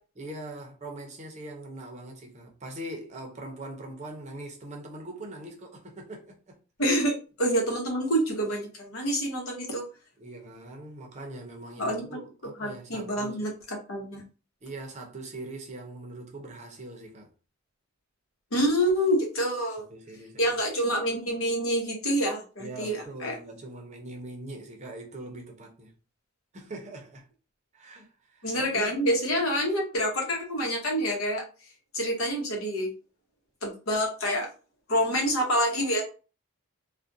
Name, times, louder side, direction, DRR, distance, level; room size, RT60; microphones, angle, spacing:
voice 1, 0.2-6.6 10.2-13.5 14.6-17.3 19.9-20.6 22.6-25.9 26.5-27.2 27.7-29.0, right 2 dB, 35° right, 0.6 m, -42 dB
voice 2, 6.8-9.8 11.8-12.2 12.6-14.2 18.5-19.9 20.4-23.3 28.4-31.4 31.9-32.9 33.6-34.5 34.9-36.0, equal, 80° left, 0.9 m, -27 dB
2.4 x 2.1 x 2.5 m
head